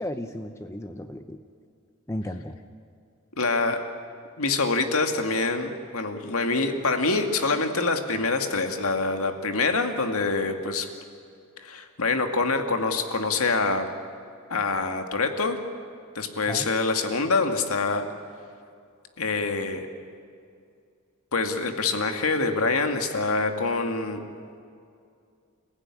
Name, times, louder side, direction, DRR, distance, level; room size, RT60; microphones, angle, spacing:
voice 1, 0.0-1.4 2.1-2.6 16.5-16.7, left 1 dB, 15° left, 7 dB, 0.8 m, -34 dB
voice 2, 3.4-3.8 4.4-10.9 11.6-13.9 14.5-15.6 16.1-18.0 19.2-19.9 21.3-24.2, left 3 dB, 70° left, 6 dB, 2.2 m, -25 dB
29.5 x 15.5 x 9.9 m, 2.4 s
head